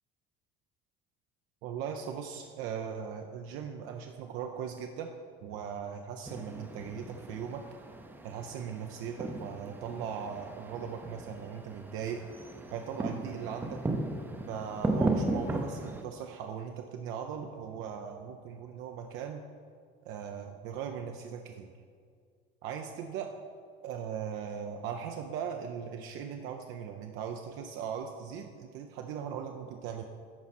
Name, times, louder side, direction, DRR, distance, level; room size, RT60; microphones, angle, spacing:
voice 1, 1.6-5.1 5.4-7.6 8.2-12.2 12.7-13.8 14.5-19.4 20.1-21.7 22.6-23.3 23.8-30.0, right 7 dB, 75° right, 4 dB, 0.5 m, -39 dB
sound 1, 6.3-16.0, right 2 dB, 10° right, 0.5 m, -36 dB
11.0 x 4.2 x 4.2 m, 2.1 s
cardioid pair, 120°, 21 cm